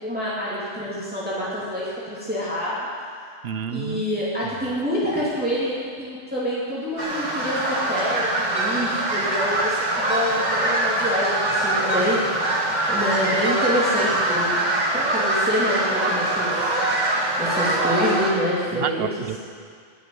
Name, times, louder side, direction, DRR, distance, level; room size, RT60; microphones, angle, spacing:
voice 1, 0.0-2.9 3.7-14.5 14.9-16.8 17.4-19.1, equal, 5° right, -9 dB, 2.7 m, -27 dB
voice 2, 3.4-4.1 4.4-4.5 18.7-19.4, right 7 dB, 60° right, 10 dB, 0.9 m, -29 dB
sound 1, 7.0-18.3, right 1 dB, 35° right, 2.0 m, -23 dB
12.0 x 9.3 x 9.5 m, 2.1 s
omnidirectional pair, 1.3 m